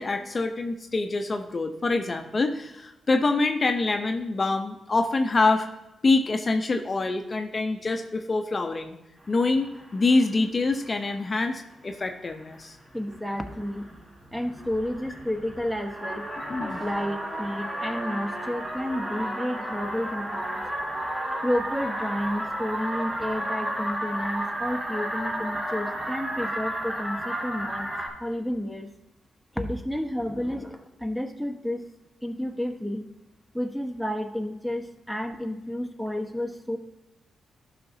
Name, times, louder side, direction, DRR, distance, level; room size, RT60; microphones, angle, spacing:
voice 1, 0.0-5.7 6.0-9.0 9.3-12.8 16.5-16.8, left 3 dB, 40° left, 6 dB, 0.7 m, -25 dB
sound 1, 9.3-10.3 10.5-11.3 11.9-12.0 12.3-12.6 13.0-28.1, right 1 dB, 30° right, 2.3 m, -33 dB
voice 2, 12.9-13.9 14.3-16.3 16.8-20.6 21.4-27.9 28.2-28.9 29.5-31.8 32.2-33.1 33.5-36.8, equal, 5° right, 6 dB, 1.0 m, -31 dB
12.0 x 5.8 x 2.7 m, 0.96 s
cardioid pair, 70°, 0 cm